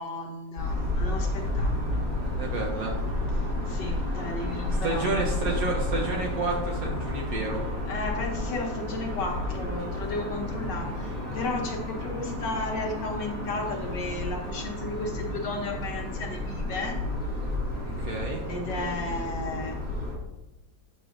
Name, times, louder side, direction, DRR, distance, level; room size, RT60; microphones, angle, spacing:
voice 1, 0.0-2.1 3.4-5.1 7.9-17.0 18.5-19.8, left 2 dB, 65° left, 2 dB, 1.5 m, -34 dB
sound 1, 0.6-20.1, left 1 dB, 25° right, 1.5 m, -31 dB
voice 2, 2.4-3.0 4.8-7.6 17.8-18.4, right 3 dB, 60° right, 0 dB, 1.0 m, -30 dB
6.8 x 6.0 x 2.5 m, 0.97 s
omnidirectional pair, 2.1 m